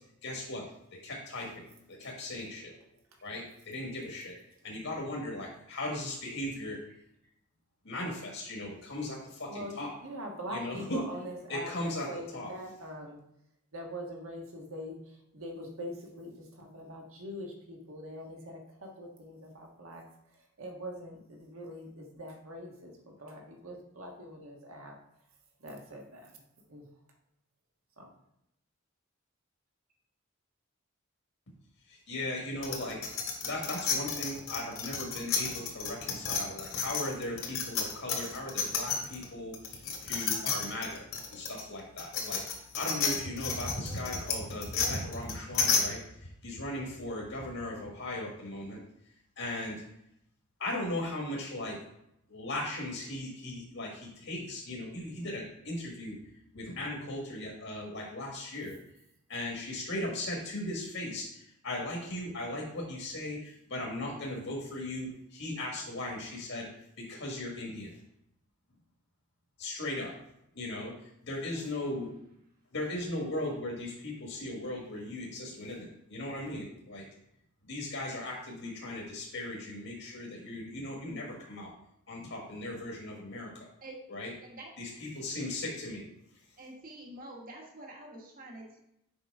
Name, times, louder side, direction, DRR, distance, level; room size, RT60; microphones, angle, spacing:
voice 1, 0.2-0.6 1.0-2.8 3.2-4.3 4.6-6.8 7.8-9.9 10.5-11.0 11.5-12.5 31.9-33.0 33.4-41.0 41.3-42.4 42.7-48.8 49.4-49.8 50.6-51.8 52.3-56.2 56.5-58.7 59.3-66.7 67.0-67.9 69.6-70.1 70.5-70.9 71.2-72.1 72.7-77.0 77.6-81.7 82.1-83.5 84.1-84.3 84.8-86.0, left 1 dB, 65° left, -2 dB, 1.5 m, -37 dB
voice 2, 10.0-13.2 13.7-15.0 15.3-16.3 16.6-20.0 20.6-22.9 23.2-25.0 25.6-26.2 26.7-26.8, equal, 70° right, 1 dB, 1.4 m, -42 dB
sound 1, 32.6-39.2 39.5-45.8, left 6 dB, 80° left, 2.0 m, -31 dB
voice 3, 86.6-88.8, right 1 dB, 40° right, -1 dB, 1.4 m, -47 dB
7.0 x 5.4 x 3.5 m, 0.80 s
head